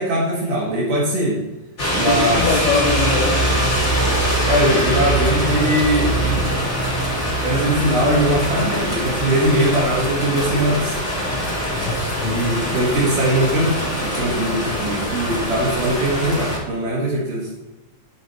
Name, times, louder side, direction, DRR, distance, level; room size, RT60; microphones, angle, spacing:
voice 1, 0.0-1.4 2.0-2.5 4.5-6.5 7.4-11.0 12.2-17.5, right 1 dB, 65° right, -5 dB, 3.3 m, -21 dB
sound 1, 1.8-16.6, equal, 20° left, 3.0 m, -22 dB
voice 2, 2.1-3.4 11.7-12.6, left 4 dB, 60° left, 1 dB, 2.2 m, -23 dB
12.5 x 4.9 x 4.4 m, 1.0 s
omnidirectional pair, 4.2 m